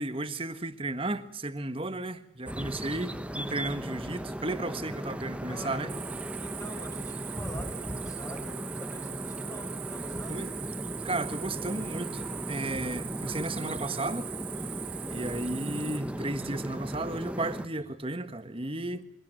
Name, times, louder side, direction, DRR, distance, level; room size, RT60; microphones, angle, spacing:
voice 1, 0.0-5.9 10.3-10.5 11.0-14.3 15.1-19.1, right 2 dB, 30° right, 1.4 m, -34 dB
sound 1, 2.5-17.7, equal, 5° right, 1.1 m, -37 dB
voice 2, 5.5-6.1 6.4-10.4, left 1 dB, 15° left, 6.7 m, -46 dB
Cricket, 5.9-16.0, right 13 dB, 80° right, 2.4 m, -41 dB
24.0 x 17.5 x 7.5 m
head